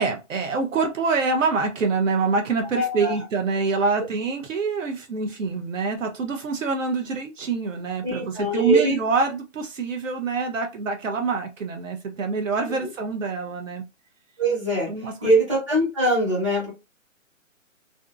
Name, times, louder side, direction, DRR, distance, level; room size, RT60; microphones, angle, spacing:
voice 1, 0.0-13.8 14.9-15.3, right 4 dB, 70° right, 4 dB, 0.6 m, -25 dB
voice 2, 2.7-3.1 8.0-8.9 12.8-12.9 14.4-14.9 15.2-16.7, right 1 dB, 25° right, -4 dB, 1.0 m, -22 dB
2.5 x 2.4 x 2.3 m, 0.26 s
hypercardioid pair, 175°, 40 cm